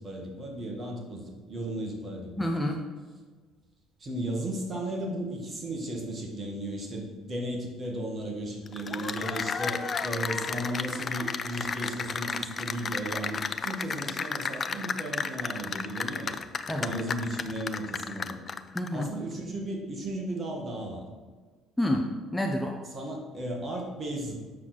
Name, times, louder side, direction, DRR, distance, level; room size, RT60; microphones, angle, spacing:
voice 1, 0.0-2.5 4.0-16.4 16.7-18.4 18.9-21.0 22.9-24.4, right 1 dB, 35° right, 0 dB, 2.1 m, -35 dB
voice 2, 2.4-2.8 16.7-16.9 18.7-19.1 21.8-22.8, left 1 dB, 10° left, 1 dB, 0.8 m, -28 dB
Cheering / Applause, 8.7-19.0, left 5 dB, 35° left, 0.4 m, -33 dB
7.4 x 6.1 x 4.3 m, 1.4 s
figure-of-eight pair, 55°, 0 cm